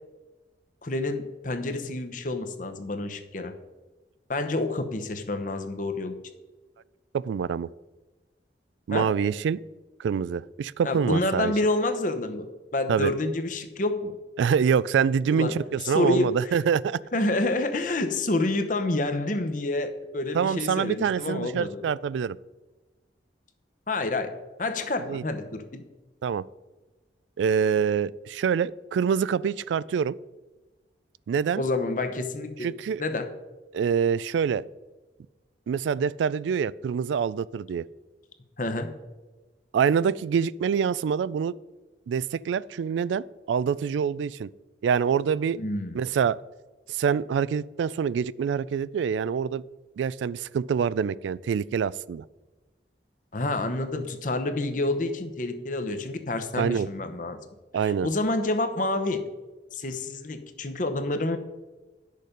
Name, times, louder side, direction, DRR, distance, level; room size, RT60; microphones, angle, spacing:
voice 1, 0.8-3.5 4.3-6.2 8.9-9.1 10.8-12.5 12.7-14.1 15.3-16.5 17.1-21.8 23.9-25.8 31.6-32.7 33.0-33.3 38.6-38.9 45.6-46.0 53.3-57.4 57.8-59.2 59.7-61.4, left 2 dB, 45° left, 8 dB, 0.9 m, -28 dB
voice 2, 7.1-7.7 8.9-9.6 10.0-11.5 12.9-13.1 14.4-17.0 20.3-22.4 25.1-25.2 26.2-26.4 27.4-30.2 31.3-31.6 32.6-33.0 33.7-34.6 35.7-37.8 39.7-41.5 42.1-44.5 44.8-45.6 45.9-46.4 46.9-49.6 50.0-52.2 56.6-56.9 57.7-58.1, right 7 dB, 90° right, 20 dB, 0.3 m, -25 dB
10.0 x 6.6 x 5.1 m, 1.2 s
head